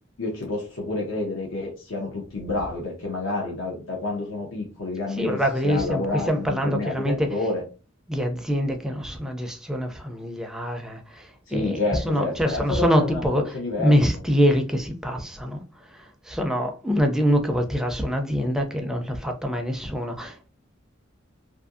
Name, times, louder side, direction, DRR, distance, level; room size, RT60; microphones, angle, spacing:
voice 1, 0.2-7.6 11.5-13.9, left 2 dB, 75° left, 0.7 m, -29 dB
voice 2, 5.2-7.3 8.1-15.6 15.9-20.5, equal, 5° right, 0.4 m, -25 dB
2.6 x 2.6 x 2.4 m
head